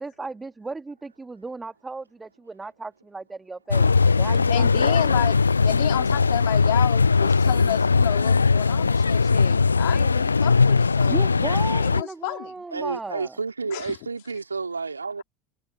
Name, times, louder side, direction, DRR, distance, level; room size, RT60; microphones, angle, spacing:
voice 1, 0.0-5.3 11.1-13.4, right 3 dB, 15° right, 2.0 m, -35 dB
sound 1, 3.7-12.0, left 4 dB, 80° left, 0.4 m, -20 dB
voice 2, 4.5-11.3 11.8-12.5 13.7-14.0, left 27 dB, 60° left, 3.2 m, -31 dB
voice 3, 12.7-15.2, right 4 dB, 85° right, 2.7 m, -30 dB
figure-of-eight pair, 70°, 0 cm